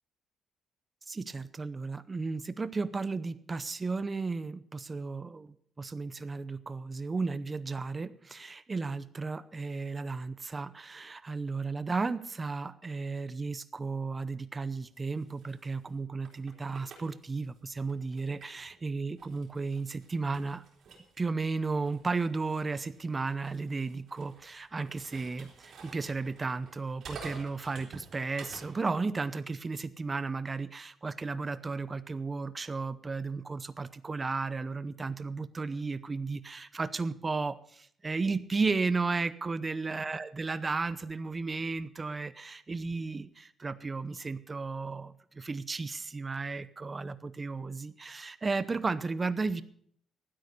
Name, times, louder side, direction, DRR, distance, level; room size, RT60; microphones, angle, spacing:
voice 1, 1.1-20.6 21.2-49.6, right 4 dB, 30° right, 15 dB, 0.7 m, -34 dB
sound 1, 14.7-18.8 19.2-28.8, right 4 dB, 65° right, 4.0 m, -52 dB
12.5 x 9.5 x 6.7 m, 0.65 s
cardioid pair, 90°, 0 cm